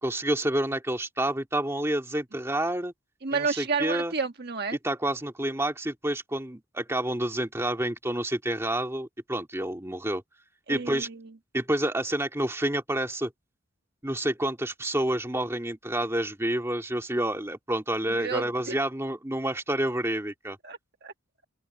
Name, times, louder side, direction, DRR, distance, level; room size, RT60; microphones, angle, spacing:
voice 1, 0.0-2.9 3.3-4.1 4.8-10.2 10.7-11.1 11.5-13.3 14.0-20.6, right 1 dB, 10° right, 2.1 m, -29 dB
voice 2, 3.2-4.8 10.7-11.2 18.2-18.7 20.6-21.1, right 5 dB, 50° right, 1.4 m, -31 dB
open air
head